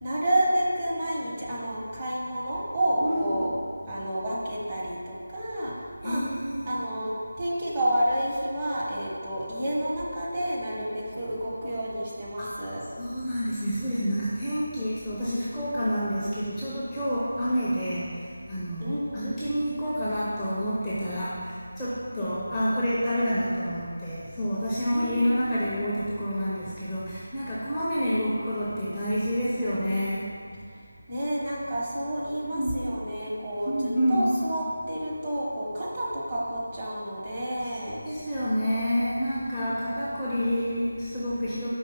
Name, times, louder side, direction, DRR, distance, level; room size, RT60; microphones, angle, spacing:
voice 1, 0.0-3.6 3.9-5.7 6.0-6.2 6.7-12.9 18.8-19.3 22.2-22.6 24.9-25.4 31.1-38.0 39.4-40.1, right 1 dB, 25° right, -6 dB, 1.0 m, -30 dB
voice 2, 3.0-3.4 6.0-6.7 12.4-12.6 13.0-30.3 32.4-32.7 33.6-34.3 38.0-41.7, equal, ahead, -11 dB, 0.6 m, -28 dB
5.2 x 3.5 x 5.5 m, 2.2 s
figure-of-eight pair, 170°, 0 cm